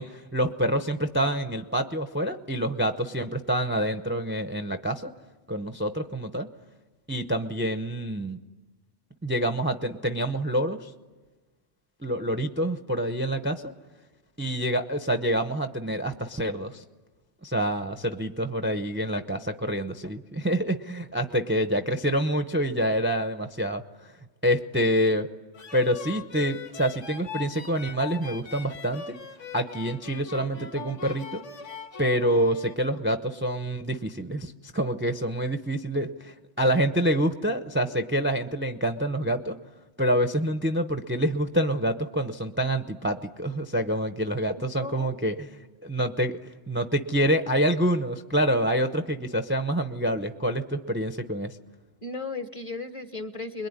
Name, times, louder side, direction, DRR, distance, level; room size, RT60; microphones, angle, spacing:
voice 1, 0.0-5.1 5.5-6.5 7.1-8.4 9.2-10.9 12.0-13.7 14.4-16.8 17.4-24.1 24.4-25.3 25.7-29.2 29.5-31.4 32.0-39.6 40.0-45.5 45.8-51.6, equal, 10° right, 7 dB, 0.7 m, -27 dB
sound 1, 25.5-32.8, left 5 dB, 90° left, 1.9 m, -41 dB
voice 2, 44.8-45.3 52.0-53.7, left 3 dB, 30° left, 9 dB, 1.1 m, -35 dB
26.5 x 22.0 x 9.7 m, 1.3 s
omnidirectional pair, 1.2 m